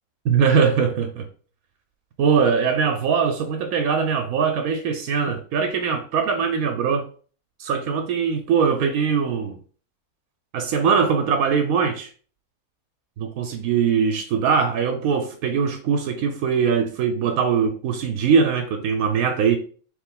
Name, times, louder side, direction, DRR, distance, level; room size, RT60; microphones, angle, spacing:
voice 1, 0.2-1.3 2.2-7.1 7.6-9.6 10.5-12.1 13.2-19.6, right 6 dB, 80° right, 1.0 m, -21 dB
3.2 x 3.1 x 3.8 m
omnidirectional pair, 1.5 m